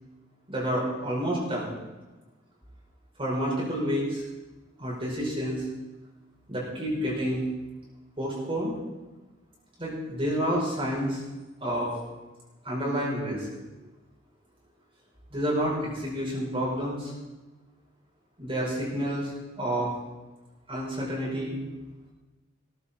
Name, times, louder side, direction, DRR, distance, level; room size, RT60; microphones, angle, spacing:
voice 1, 0.5-1.7 3.2-4.2 4.8-5.6 6.5-7.4 8.2-8.7 9.8-11.2 11.6-11.9 12.6-13.5 15.3-17.1 18.4-19.9 20.7-21.6, equal, 30° right, -5 dB, 5.1 m, -29 dB
18.0 x 14.0 x 4.4 m, 1.1 s
head